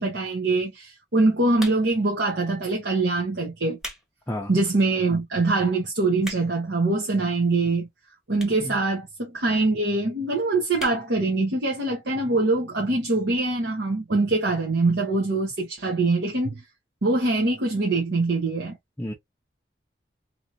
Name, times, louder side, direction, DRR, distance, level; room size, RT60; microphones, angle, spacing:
voice 1, 0.0-3.8 4.5-7.9 8.3-16.6 17.0-18.7, right 2 dB, 80° right, 1.0 m, -23 dB
sound 1, 1.5-2.1 2.8-3.0 3.5-4.1 4.5-4.6 5.2-5.3 5.5-5.6 5.9-6.7 7.5-7.6 8.3-8.7 9.0-9.1 9.3-9.4 9.6-9.7 10.0-10.3 10.7-11.0 11.4-11.5 11.7-11.8, equal, 5° right, 1.0 m, -38 dB
voice 2, 4.3-4.5 8.6-8.7 19.0-19.1, left 1 dB, 10° left, 0.5 m, -31 dB
3.0 x 2.8 x 2.6 m
head